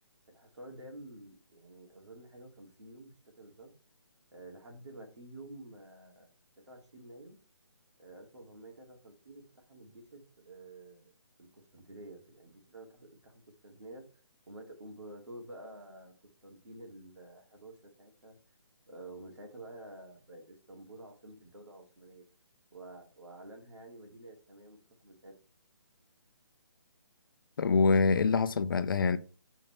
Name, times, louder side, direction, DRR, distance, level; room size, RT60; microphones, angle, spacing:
voice 1, 0.3-3.7 4.3-6.3 6.6-7.4 8.0-11.1 11.4-14.0 14.5-16.1 16.4-18.4 18.9-22.2 22.7-25.3, right 1 dB, 85° right, 2.5 m, -50 dB
voice 2, 27.6-29.2, left 4 dB, 50° left, 0.5 m, -25 dB
6.0 x 4.5 x 4.3 m
hypercardioid pair, 165°, 15 cm